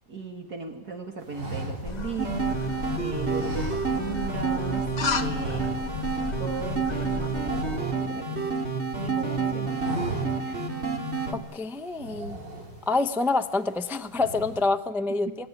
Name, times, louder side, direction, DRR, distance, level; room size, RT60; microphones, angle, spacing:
voice 1, 0.1-5.8 6.4-10.7 15.3-15.4, right 4 dB, 55° right, 3 dB, 2.7 m, -37 dB
sound 1, 1.3-2.8 3.3-4.4 4.6-4.8 5.2-6.1 6.4-6.6 6.9-8.7 9.1-9.3 9.6-10.6 11.0-11.1 11.9-13.0 13.5-13.8 14.1-14.7, right 2 dB, 75° right, 5.6 m, -37 dB
sound 2, 1.8-7.8, left 5 dB, 35° left, 0.8 m, -34 dB
sound 3, 2.2-11.3, right 4 dB, 35° right, 3.0 m, -29 dB
voice 2, 11.3-12.4 12.9-15.3, left 3 dB, 5° right, 9 dB, 0.4 m, -27 dB
28.5 x 19.0 x 9.2 m, 1.3 s
omnidirectional pair, 2.0 m